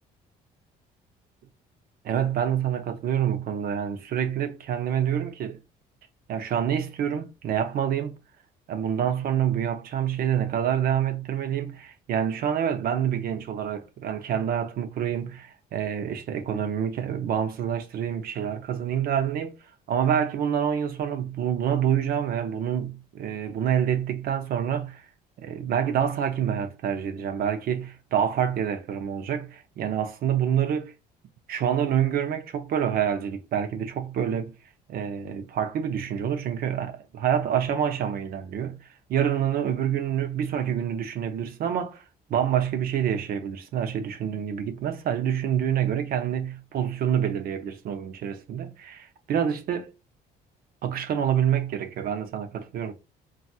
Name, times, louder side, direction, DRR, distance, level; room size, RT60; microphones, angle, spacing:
voice 1, 2.0-5.6 6.3-8.2 8.7-25.1 25.4-30.9 31.5-34.5 34.9-49.9 50.8-52.9, right 9 dB, 60° right, 0.6 m, -27 dB
3.9 x 2.4 x 2.3 m
cardioid pair, 110°, 17 cm